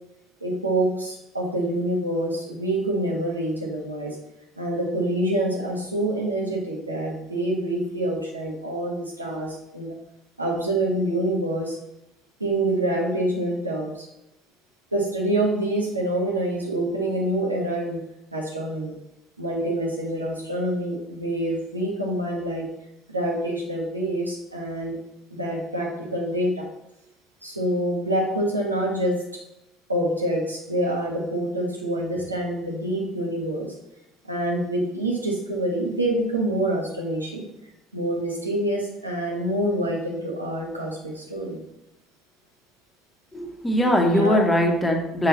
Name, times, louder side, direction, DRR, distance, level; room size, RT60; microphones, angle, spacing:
voice 1, 0.4-4.2 4.6-10.0 10.4-11.8 12.4-14.1 14.9-18.0 18.3-18.9 19.4-22.7 23.1-25.0 25.3-26.6 27.4-29.4 29.9-33.7 34.2-37.5 37.9-41.6 44.2-44.4, right 1 dB, 90° right, -1 dB, 1.1 m, -26 dB
voice 2, 43.3-45.3, equal, 15° left, 2 dB, 1.3 m, -21 dB
6.3 x 4.0 x 4.1 m, 0.87 s
figure-of-eight pair, 60°, 0 cm